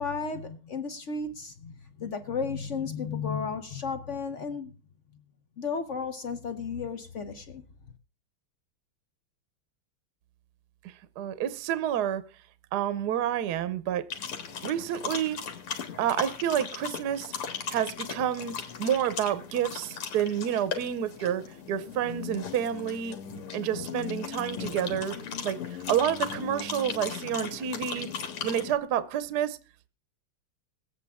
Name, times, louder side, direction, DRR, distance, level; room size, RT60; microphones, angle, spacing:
voice 1, 0.0-4.7 5.6-7.6, left 5 dB, 60° left, 0.7 m, -33 dB
voice 2, 10.8-12.2 12.7-14.0 14.6-15.4 16.0-17.3 17.7-21.4 21.7-23.2 23.5-25.1 25.4-28.1 28.4-29.6, right 10 dB, 60° right, 1.2 m, -29 dB
sound 1, 14.1-28.8, left 7 dB, 85° left, 2.4 m, -37 dB
21.5 x 8.5 x 3.5 m
omnidirectional pair, 2.4 m